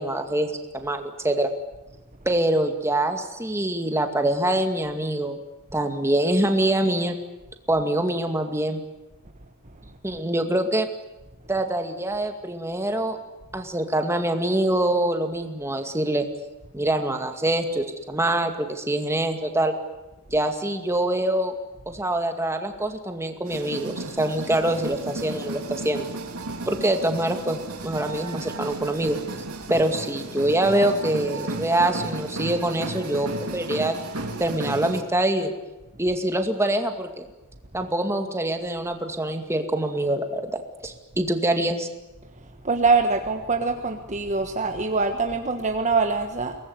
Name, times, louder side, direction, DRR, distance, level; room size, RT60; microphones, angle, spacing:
voice 1, 0.0-1.5 2.3-5.4 5.7-7.2 7.7-8.8 10.0-10.9 11.5-13.2 13.5-16.3 16.7-19.7 20.3-21.5 21.9-26.1 26.7-29.2 29.7-34.0 34.4-35.5 36.0-37.3 37.7-41.9, right 1 dB, 10° right, 5 dB, 2.2 m, -24 dB
sound 1, 23.4-35.0, right 2 dB, 80° right, 3.3 m, -34 dB
voice 2, 42.6-46.6, right 4 dB, 35° right, 5 dB, 1.4 m, -23 dB
23.5 x 19.5 x 9.6 m, 1.0 s
head